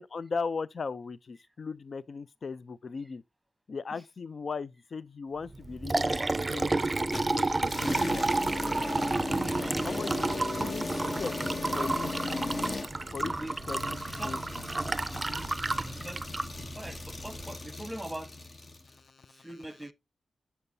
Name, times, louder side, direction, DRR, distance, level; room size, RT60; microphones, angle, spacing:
voice 1, 0.0-3.2 3.7-8.2 9.8-11.4 11.7-12.8 13.1-13.3 13.7-14.4 19.0-19.5, left 4 dB, 60° left, 0.3 m, -38 dB
Liquid, 5.5-17.4, right 2 dB, 30° right, 0.4 m, -31 dB
sound 1, 7.1-18.9, left 2 dB, 45° left, 0.9 m, -38 dB
voice 2, 9.1-10.2 13.2-13.6 14.1-14.5 14.9-15.5 15.9-16.3 16.7-18.3 19.3-19.9, right 1 dB, 10° right, 1.0 m, -43 dB
6.9 x 6.7 x 2.7 m
cardioid pair, 55°, 0 cm